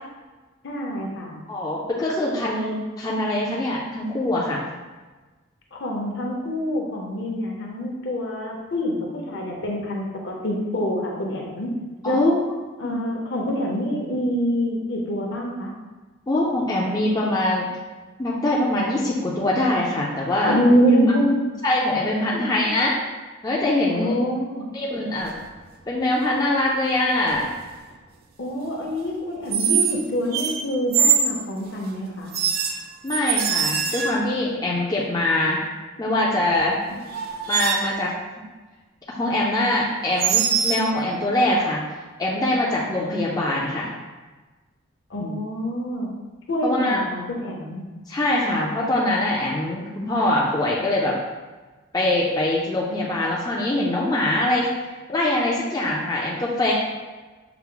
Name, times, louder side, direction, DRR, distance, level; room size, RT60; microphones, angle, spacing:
voice 1, 0.6-1.4 5.7-11.7 12.0-12.4 12.8-15.7 20.4-21.5 22.3-22.4 23.9-24.7 28.4-32.3 45.1-46.1 46.5-47.8, equal, 55° left, -1 dB, 0.8 m, -25 dB
voice 2, 1.5-4.6 12.0-12.4 12.8-13.0 16.3-17.7 18.2-20.6 21.6-23.0 23.4-24.2 24.7-25.3 25.9-27.5 33.0-35.6 36.0-36.8 37.5-38.1 39.1-41.8 42.2-43.9 45.2-45.4 46.6-47.0 48.1-51.1 51.9-54.7 55.1-56.7, left 1 dB, 20° left, -4 dB, 0.4 m, -23 dB
sound 1, 25.2-25.5 27.3-27.6 29.5-30.0 30.3-31.4 32.3-34.4 36.5-36.6 37.1-38.0 40.2-40.9, right 7 dB, 45° right, 0.4 m, -23 dB
5.7 x 2.0 x 3.7 m, 1.2 s
head